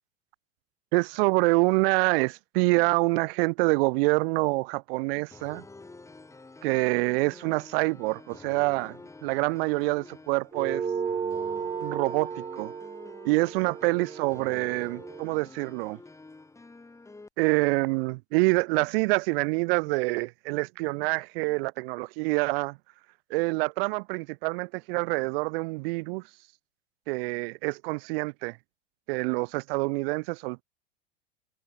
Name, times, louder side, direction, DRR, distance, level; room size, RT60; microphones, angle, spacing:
voice 1, 0.9-5.6 6.6-10.8 11.8-12.7 13.2-16.0 17.4-22.8 23.3-26.2 27.1-28.6 29.1-30.6, right 26 dB, 55° right, 0.6 m, -26 dB
sound 1, 5.3-17.3, left 3 dB, 10° left, 1.8 m, -48 dB
sound 2, 10.5-15.3, right 6 dB, 15° right, 0.8 m, -34 dB
hypercardioid pair, 105°, 36 cm